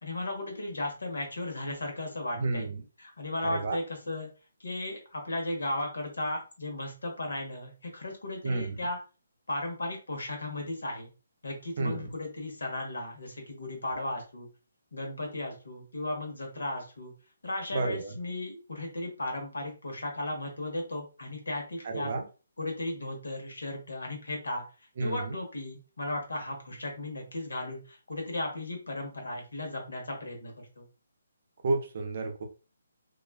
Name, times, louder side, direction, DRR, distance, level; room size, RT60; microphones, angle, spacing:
voice 1, 0.0-2.7 3.0-4.3 4.6-9.0 9.5-11.1 11.4-14.5 14.9-17.1 17.4-22.1 22.6-24.6 25.0-30.8, left 1 dB, 80° left, 2 dB, 0.9 m, -35 dB
voice 2, 2.4-2.8 3.4-3.8 8.4-8.7 11.8-12.1 17.7-18.1 21.8-22.2 25.0-25.4 31.6-32.5, right 3 dB, 50° right, 4 dB, 0.5 m, -31 dB
2.4 x 2.2 x 2.3 m, 0.34 s
hypercardioid pair, 150°, 0 cm